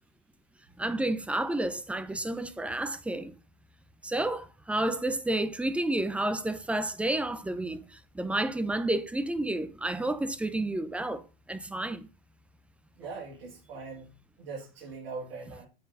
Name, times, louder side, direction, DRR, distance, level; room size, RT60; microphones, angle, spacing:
voice 1, 0.8-3.4 4.0-11.2 11.5-12.1, right 1 dB, 5° right, 0.5 m, -30 dB
voice 2, 13.0-15.7, right 4 dB, 70° right, 3.3 m, -41 dB
7.7 x 4.6 x 5.4 m
supercardioid pair, 130°, 31 cm